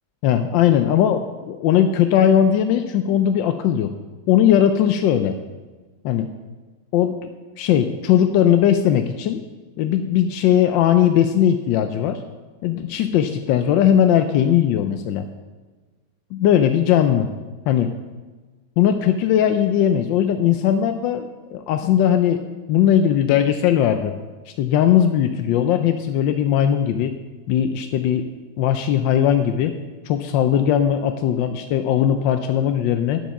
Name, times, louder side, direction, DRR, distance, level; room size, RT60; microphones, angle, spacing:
voice 1, 0.2-3.9 4.3-5.3 6.0-6.3 6.9-7.3 7.6-9.4 9.8-12.2 12.6-15.3 16.3-17.3 17.7-17.9 18.8-22.4 22.7-24.1 24.5-27.1 27.5-28.3 28.6-29.7 30.1-33.2, left 10 dB, 90° left, 8 dB, 1.3 m, -19 dB
9.3 x 8.1 x 5.9 m, 1.3 s
omnidirectional pair, 2.0 m